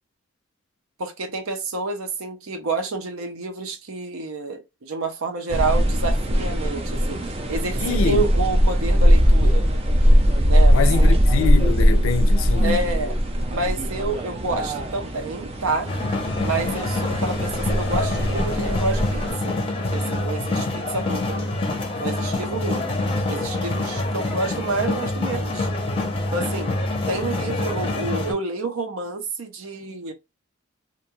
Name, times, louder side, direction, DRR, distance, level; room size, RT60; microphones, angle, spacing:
voice 1, 1.0-9.6 10.5-11.2 12.6-13.1 13.5-15.9 16.4-19.6 19.9-21.5 22.0-22.8 23.3-25.7 26.3-26.7 27.1-30.1, right 3 dB, 85° right, 0.7 m, -29 dB
sound 1, 5.5-19.3, equal, 25° right, 0.4 m, -20 dB
voice 2, 7.8-8.3 10.7-12.8, left 5 dB, 75° left, 0.4 m, -25 dB
sound 2, 15.9-28.3, left 2 dB, 25° left, 0.5 m, -26 dB
2.5 x 2.2 x 2.9 m
head